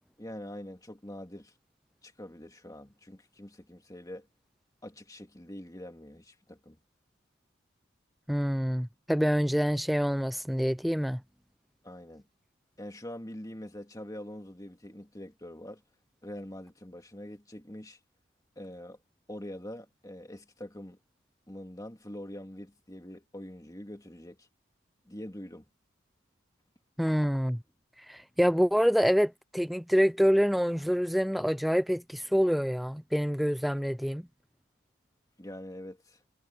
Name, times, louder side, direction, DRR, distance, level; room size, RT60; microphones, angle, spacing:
voice 1, 0.2-1.5 2.0-4.3 4.8-6.8 11.8-12.2 12.8-15.8 16.2-18.0 18.6-19.0 19.3-21.0 21.5-24.5 25.1-25.7 35.4-36.2, left 1 dB, 15° left, 2.5 m, -44 dB
voice 2, 8.3-11.2 27.0-27.6 28.1-34.3, equal, ahead, 0.3 m, -26 dB
head